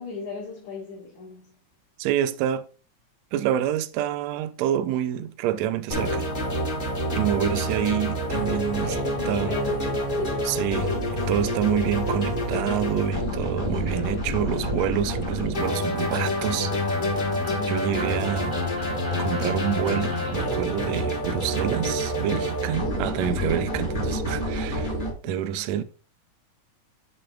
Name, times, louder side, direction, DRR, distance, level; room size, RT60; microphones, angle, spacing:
voice 1, 0.0-1.5 7.0-7.6 8.8-10.5 17.2-17.8 25.2-25.7, left 3 dB, 75° left, 3.1 m, -37 dB
voice 2, 2.0-2.7 3.3-6.3 7.1-9.0 9.3-9.6 10.5-16.7 17.7-18.6 19.2-24.9 25.2-25.8, right 10 dB, 80° right, 1.7 m, -27 dB
sound 1, 5.9-25.1, equal, 25° left, 1.1 m, -27 dB
sound 2, 14.0-20.5, left 1 dB, ahead, 3.2 m, -41 dB
8.7 x 6.2 x 2.4 m
omnidirectional pair, 3.4 m